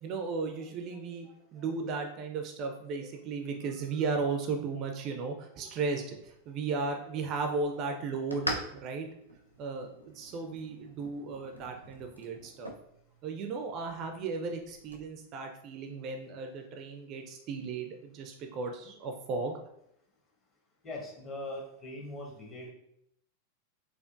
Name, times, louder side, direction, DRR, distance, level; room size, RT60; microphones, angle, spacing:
voice 1, 0.0-9.1 9.6-12.7 13.2-19.6, right 4 dB, 35° right, 4 dB, 0.4 m, -35 dB
sound 1, 6.1-15.1, equal, 90° left, 0.5 m, -44 dB
voice 2, 20.8-22.7, left 1 dB, 25° left, -2 dB, 1.1 m, -41 dB
4.2 x 2.5 x 2.4 m, 0.75 s
figure-of-eight pair, 90°, 0 cm